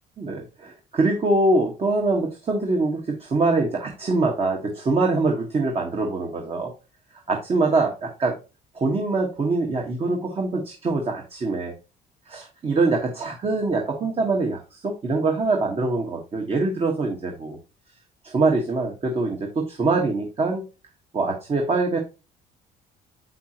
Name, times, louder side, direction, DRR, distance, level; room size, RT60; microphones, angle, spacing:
voice 1, 0.2-6.7 7.3-8.4 8.7-11.7 12.3-17.6 18.2-20.6 21.1-22.0, right 3 dB, 35° right, 1 dB, 1.5 m, -24 dB
7.7 x 5.8 x 2.9 m, 0.30 s
cardioid pair, 110°, 17 cm